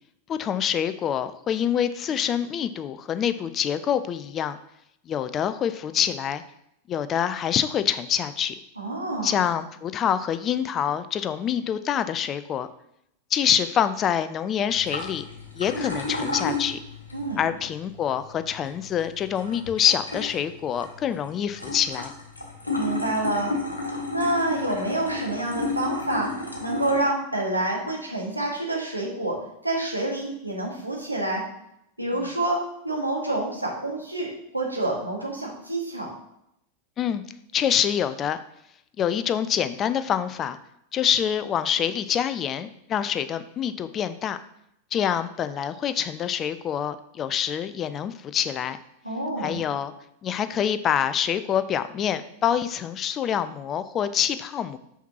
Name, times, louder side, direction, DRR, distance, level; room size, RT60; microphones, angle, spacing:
voice 1, 0.3-4.6 5.1-6.4 6.9-8.5 9.2-12.7 13.3-15.2 15.6-16.8 17.4-22.1 32.1-32.3 37.0-37.2 37.5-38.4 39.0-40.6 40.9-44.4 44.9-48.8 49.4-49.9 50.2-54.8, left 9 dB, 30° left, 12 dB, 0.4 m, -26 dB
voice 2, 8.8-9.4 17.1-17.4 22.7-23.5 24.1-26.3 26.6-29.4 29.6-31.4 32.0-34.3 34.5-36.1 49.0-49.6, right 2 dB, 85° right, -2 dB, 1.5 m, -27 dB
sound 1, 14.7-27.0, left 2 dB, 80° left, 1.3 m, -33 dB
6.0 x 5.7 x 2.8 m, 0.77 s
figure-of-eight pair, 90°, 0 cm